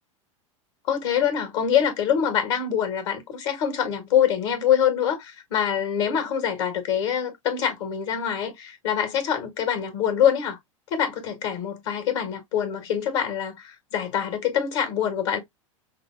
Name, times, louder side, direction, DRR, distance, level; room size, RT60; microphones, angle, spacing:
voice 1, 0.9-10.6 10.9-15.4, left 9 dB, 60° left, 1.5 m, -25 dB
5.5 x 2.0 x 2.5 m
hypercardioid pair, 90°, 17 cm